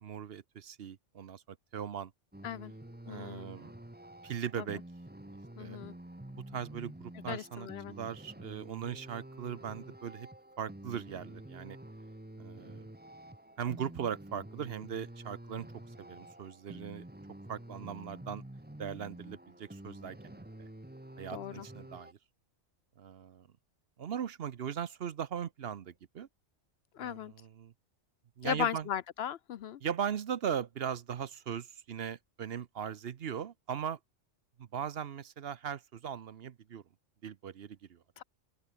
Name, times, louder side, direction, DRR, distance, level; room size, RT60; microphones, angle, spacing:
voice 1, 0.0-2.1 3.1-3.7 4.2-4.8 5.6-5.8 6.3-10.3 10.6-11.8 12.4-12.9 13.6-15.7 16.0-17.0 17.5-18.4 18.8-20.7 21.2-22.2 23.0-23.5 24.0-26.3 27.0-27.7 28.4-28.9 29.8-34.0 34.6-36.8 37.2-38.0, right 8 dB, 60° right, 0.9 m, -39 dB
sound 1, 2.3-22.1, right 1 dB, 10° right, 1.3 m, -49 dB
voice 2, 3.1-3.5 4.6-4.7 5.6-5.9 7.3-7.9 21.3-21.7 26.9-27.3 28.4-29.8 38.2-38.3, left 9 dB, 65° left, 0.8 m, -37 dB
open air
omnidirectional pair, 1.2 m